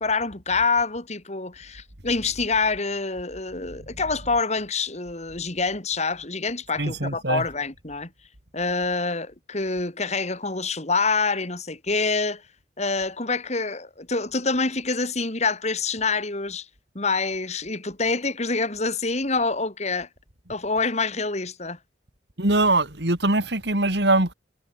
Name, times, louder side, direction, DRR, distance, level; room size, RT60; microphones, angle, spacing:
voice 1, 0.0-8.1 8.5-12.4 12.8-16.7 16.9-20.1 20.5-21.8, left 4 dB, 40° left, 2.9 m, -26 dB
voice 2, 6.8-7.4 22.4-24.3, right 2 dB, 65° right, 3.7 m, -22 dB
head